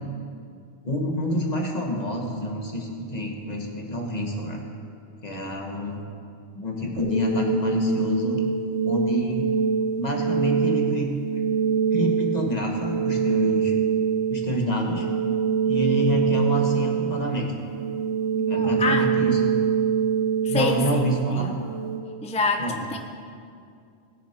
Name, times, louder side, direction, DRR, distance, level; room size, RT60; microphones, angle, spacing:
voice 1, 0.8-4.6 5.2-6.0 6.6-8.4 8.8-9.5 10.0-11.1 11.9-13.7 14.3-15.1 15.6-17.5 18.5-19.8 20.5-21.5 22.6-22.8, equal, 35° left, 0 dB, 1.5 m, -27 dB
sound 1, 7.0-22.0, right 7 dB, 90° right, 2.2 m, -25 dB
voice 2, 18.3-19.1 20.4-21.6 22.2-22.6 22.9-23.0, left 3 dB, 10° left, 4 dB, 0.3 m, -27 dB
19.5 x 7.1 x 4.4 m, 2.4 s
omnidirectional pair, 1.2 m